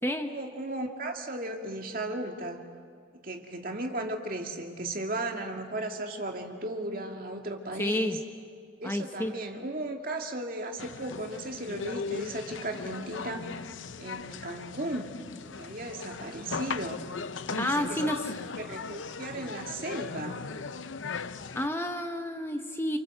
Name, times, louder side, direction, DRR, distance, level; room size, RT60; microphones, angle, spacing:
voice 1, 0.0-2.7 3.2-8.2 8.8-13.5 14.0-15.1 15.6-17.0 17.5-18.1 18.6-20.5, right 1 dB, 45° right, 3 dB, 2.4 m, -36 dB
voice 2, 7.8-8.2 8.8-9.3 17.6-18.3 21.5-23.0, left 1 dB, 10° left, 5 dB, 1.0 m, -30 dB
sound 1, 10.8-21.7, left 5 dB, 85° left, 0.7 m, -38 dB
28.5 x 26.5 x 7.9 m, 2.2 s
head